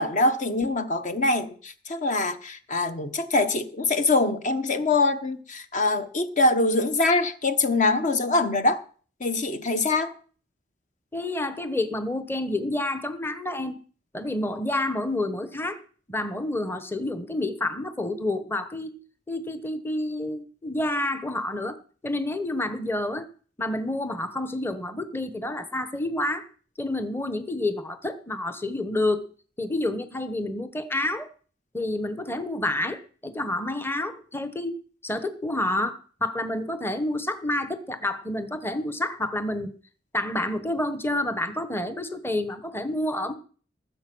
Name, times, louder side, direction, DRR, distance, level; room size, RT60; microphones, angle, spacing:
voice 1, 0.0-8.8 9.2-10.1, left 2 dB, 40° left, 1.0 m, -24 dB
voice 2, 11.1-13.8 14.1-15.8 16.1-21.8 22.0-23.3 23.6-26.5 26.8-29.3 29.6-31.3 31.7-34.7 35.0-39.7 40.1-43.3, left 1 dB, 10° left, 1.0 m, -29 dB
19.5 x 7.7 x 6.1 m
head